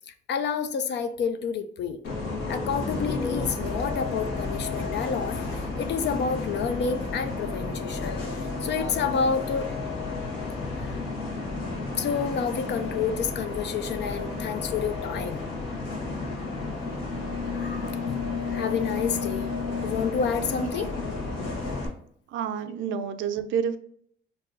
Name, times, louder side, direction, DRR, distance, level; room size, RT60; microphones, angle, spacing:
voice 1, 0.1-2.0 2.5-9.7 10.8-11.3 12.0-15.4 17.5-19.5 19.8-20.9, left 6 dB, 60° left, 9 dB, 0.4 m, -29 dB
Bus, 2.0-21.9, left 3 dB, 75° left, 1.3 m, -32 dB
voice 2, 22.3-23.8, right 7 dB, 75° right, 10 dB, 0.4 m, -29 dB
4.6 x 2.7 x 2.6 m, 0.64 s
cardioid pair, 90°, 20 cm